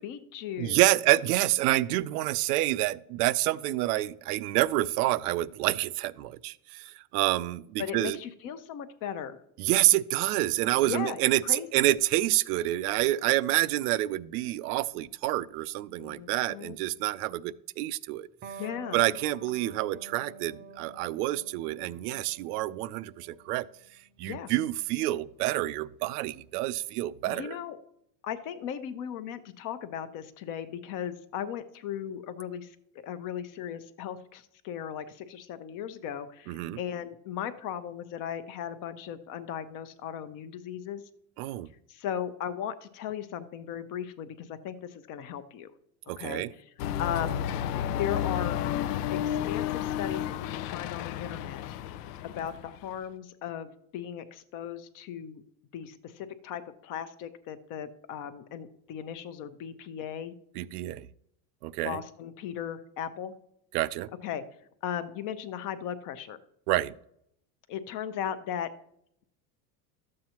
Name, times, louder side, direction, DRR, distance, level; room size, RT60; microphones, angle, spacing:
voice 1, 0.0-0.8 7.8-9.4 10.8-11.9 16.0-16.8 18.6-19.0 24.2-24.5 27.3-27.8 28.2-32.8 33.0-41.0 41.9-45.7 46.2-46.7 47.0-47.4 48.0-48.6 49.2-51.8 52.3-55.4 55.7-60.3 61.8-63.3 64.2-64.4 64.8-66.4 67.7-68.7, left 9 dB, 45° left, 11 dB, 0.7 m, -37 dB
voice 2, 0.6-8.2 9.6-18.3 18.9-23.7 24.2-27.6 36.5-36.8 41.4-41.7 46.1-46.5 60.6-61.1 61.6-62.0 63.7-64.1 66.7-66.9, right 16 dB, 75° right, 16 dB, 0.5 m, -28 dB
Electric guitar, 18.4-25.6, right 4 dB, 20° right, 0.5 m, -49 dB
sound 1, 46.8-53.0, left 10 dB, 85° left, 0.6 m, -32 dB
12.5 x 7.6 x 2.9 m, 0.72 s
supercardioid pair, 145°, 46 cm